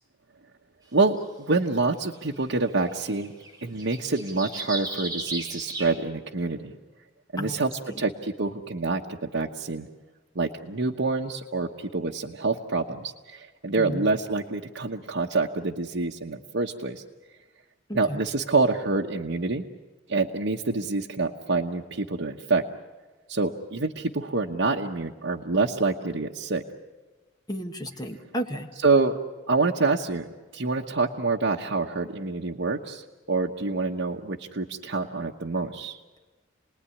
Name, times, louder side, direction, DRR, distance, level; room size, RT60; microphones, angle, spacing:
voice 1, 0.9-3.3 3.6-6.7 7.3-9.9 10.3-17.0 17.9-19.6 20.1-22.6 23.3-26.6 28.8-29.2 29.5-30.3 30.5-36.0, right 3 dB, 65° right, 0 dB, 1.1 m, -27 dB
sound 1, 1.2-1.3 2.4-2.5 2.7-5.9, right 2 dB, 20° right, 4.9 m, -35 dB
voice 2, 7.4-8.0 13.8-14.1 17.9-18.2 27.5-28.7, equal, 20° left, 4 dB, 1.7 m, -33 dB
29.5 x 19.5 x 9.9 m, 1.3 s
head